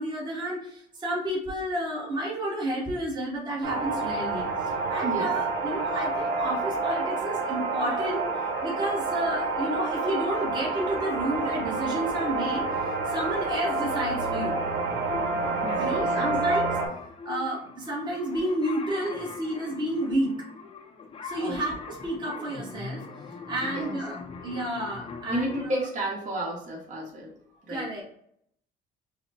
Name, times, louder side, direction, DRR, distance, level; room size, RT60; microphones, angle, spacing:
voice 1, 0.0-8.2 8.6-12.6 13.1-14.6 15.7-16.8 17.2-20.3 21.2-23.0 23.5-25.6 27.7-28.0, right 1 dB, 25° right, -4 dB, 1.2 m, -31 dB
sound 1, 3.6-16.9, right 3 dB, 75° right, 1.0 m, -28 dB
sound 2, 14.0-25.6, left 4 dB, 35° left, 0.5 m, -41 dB
voice 2, 15.6-16.3 21.4-21.6 23.6-24.0 25.3-27.3 27.6-27.9, right 1 dB, 50° right, -2 dB, 1.3 m, -32 dB
5.5 x 2.1 x 2.9 m, 0.69 s
cardioid pair, 110°, 17 cm